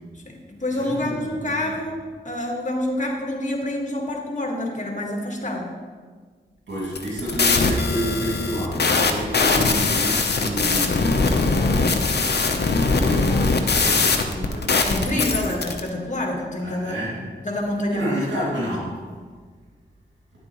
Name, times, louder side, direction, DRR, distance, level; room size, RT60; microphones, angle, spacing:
voice 1, 0.1-2.0 2.2-5.7 14.8-17.0 17.4-18.2, left 1 dB, 40° left, 0 dB, 1.7 m, -27 dB
voice 2, 0.7-1.1 1.6-1.7 6.7-12.1 12.9-15.6 16.6-17.1 17.9-18.9, equal, 90° right, -8 dB, 2.5 m, -30 dB
sound 1, 6.8-15.8, left 4 dB, 65° left, 0.8 m, -21 dB
10.0 x 7.5 x 3.1 m, 1.5 s
cardioid pair, 45°, 18 cm